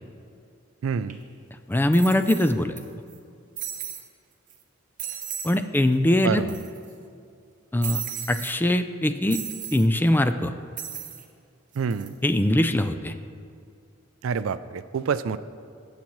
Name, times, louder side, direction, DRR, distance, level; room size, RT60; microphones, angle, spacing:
voice 1, 0.8-1.2 6.2-6.5 11.7-12.2 14.2-15.4, right 6 dB, 70° right, 14 dB, 0.4 m, -27 dB
sound 1, 1.1-1.2 1.9-2.8 3.1-3.2 3.6-4.1 4.5-4.6 5.0-5.6 5.9-6.0 6.2-6.9 7.8-8.6 9.3-9.9 10.8-11.3 11.7-12.1, right 9 dB, 40° right, 1.0 m, -35 dB
voice 2, 1.7-2.8 5.4-6.4 7.7-8.0 8.3-9.4 9.7-10.5 12.2-13.1, left 1 dB, 10° left, 9 dB, 0.3 m, -22 dB
18.5 x 7.5 x 3.1 m, 2.4 s
head